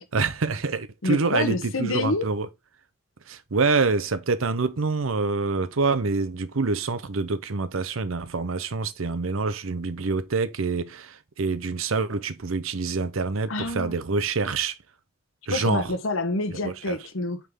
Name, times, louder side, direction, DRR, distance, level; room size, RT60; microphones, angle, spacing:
voice 1, 0.0-2.5 3.3-14.7 15.5-15.9 16.6-17.0, right 4 dB, 80° right, 0.7 m, -26 dB
voice 2, 1.0-2.3 13.5-14.0 15.5-17.4, left 2 dB, 80° left, 1.0 m, -27 dB
8.3 x 3.8 x 3.6 m
head